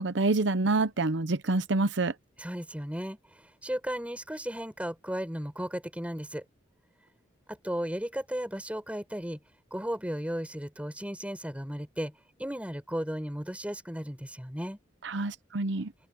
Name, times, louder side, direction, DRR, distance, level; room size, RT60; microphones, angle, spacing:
voice 1, 0.0-2.1 15.0-15.9, right 3 dB, 70° right, 0.8 m, -27 dB
voice 2, 2.4-6.4 7.5-9.4 9.7-12.1 12.4-14.8, equal, 5° right, 7.8 m, -35 dB
head